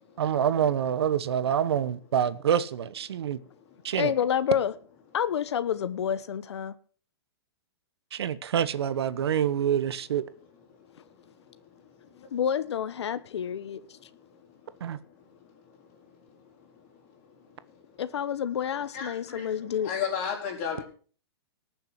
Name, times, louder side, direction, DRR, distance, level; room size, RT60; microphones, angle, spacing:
voice 1, 0.2-3.4 3.8-4.1 8.1-10.2 14.8-15.0, right 9 dB, 70° right, 1.0 m, -26 dB
voice 2, 4.0-4.7 5.1-6.7 12.3-13.8 18.0-19.9, left 8 dB, 85° left, 0.9 m, -28 dB
voice 3, 18.9-19.5 19.8-20.8, left 7 dB, 30° left, 4.1 m, -32 dB
19.0 x 6.9 x 5.8 m
hypercardioid pair, 180°, 14 cm